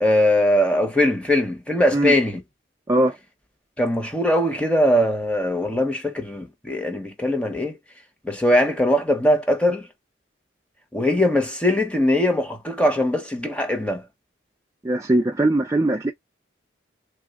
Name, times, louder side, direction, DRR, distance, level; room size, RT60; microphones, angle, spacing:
voice 1, 0.0-2.4 3.8-7.8 8.2-9.9 10.9-14.0, left 1 dB, 5° left, 0.7 m, -21 dB
voice 2, 14.8-16.1, right 1 dB, 15° right, 0.3 m, -20 dB
3.6 x 2.1 x 3.5 m
head